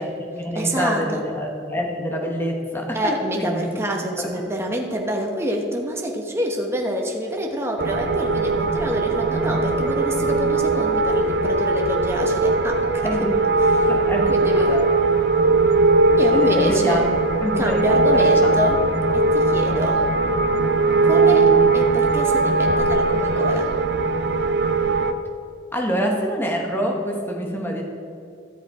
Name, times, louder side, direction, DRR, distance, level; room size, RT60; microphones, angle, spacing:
voice 1, 0.0-3.8 4.2-4.4 13.0-13.4 13.9-14.7 16.2-17.1 17.4-18.9 25.7-27.8, equal, 10° left, 1 dB, 1.3 m, -26 dB
voice 2, 0.5-1.2 2.9-13.3 13.8-13.9 14.3-14.8 16.2-17.1 17.6-18.8 19.1-20.0 21.0-23.7, equal, 15° right, 1 dB, 1.1 m, -26 dB
sound 1, 7.8-25.1, right 3 dB, 60° right, 0.6 m, -19 dB
13.5 x 7.2 x 4.8 m, 2.5 s
head